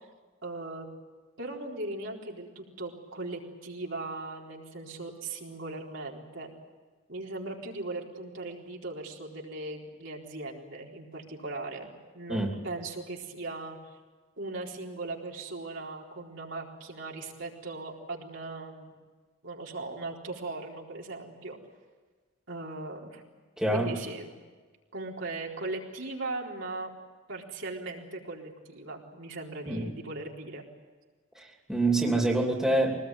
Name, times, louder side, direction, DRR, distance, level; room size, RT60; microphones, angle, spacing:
voice 1, 0.4-0.9 1.4-6.5 7.1-13.8 14.4-18.9 19.4-21.6 22.5-23.2 23.7-24.3 24.9-26.9 27.3-30.6, right 2 dB, 65° right, -2 dB, 4.2 m, -38 dB
voice 2, 23.6-23.9 29.7-29.9 31.4-31.5 31.7-33.0, right 2 dB, 5° right, 0 dB, 2.9 m, -26 dB
24.0 x 19.5 x 9.1 m, 1.4 s
head